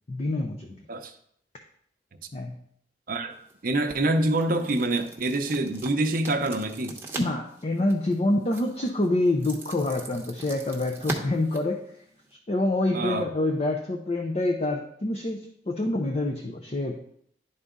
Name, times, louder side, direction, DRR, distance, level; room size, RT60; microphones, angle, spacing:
voice 1, 0.1-0.7 2.3-2.6 7.2-11.8 12.5-17.1, left 2 dB, 35° left, 3 dB, 0.6 m, -27 dB
sound 1, 3.3-12.4, right 2 dB, 15° right, 1.0 m, -41 dB
voice 2, 3.6-7.0 12.9-13.3, right 2 dB, 50° right, 7 dB, 0.7 m, -26 dB
11.0 x 4.0 x 3.7 m, 0.67 s
head